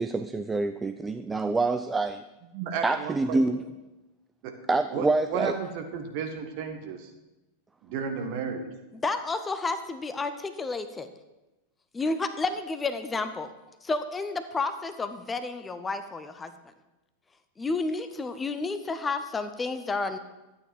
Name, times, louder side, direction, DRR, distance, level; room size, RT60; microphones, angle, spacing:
voice 1, 0.0-2.2 2.8-3.6 4.7-5.6, right 3 dB, 10° right, 11 dB, 0.4 m, -26 dB
voice 2, 2.5-3.4 4.4-4.5 4.9-7.1 7.8-8.7, right 6 dB, 45° right, 5 dB, 1.6 m, -33 dB
voice 3, 8.9-11.1 11.9-13.5 13.8-16.5 17.6-20.2, left 3 dB, 15° left, 9 dB, 0.7 m, -31 dB
12.5 x 8.8 x 4.9 m, 1.0 s
figure-of-eight pair, 90°, 0 cm